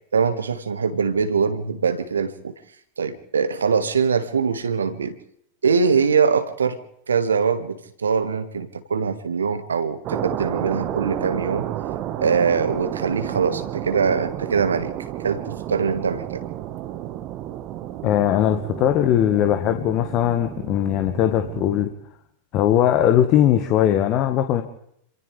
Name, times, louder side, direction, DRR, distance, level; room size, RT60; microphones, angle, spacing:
voice 1, 0.1-2.5 3.0-5.2 5.6-6.8 7.1-11.7 12.2-14.9 15.2-16.4, right 5 dB, 70° right, 10 dB, 1.9 m, -22 dB
sound 1, 10.0-21.9, right 12 dB, 40° right, 1.6 m, -31 dB
voice 2, 18.0-21.9 22.5-24.6, left 11 dB, 40° left, 7 dB, 1.7 m, -19 dB
27.5 x 27.0 x 3.5 m, 0.71 s
figure-of-eight pair, 90°, 0 cm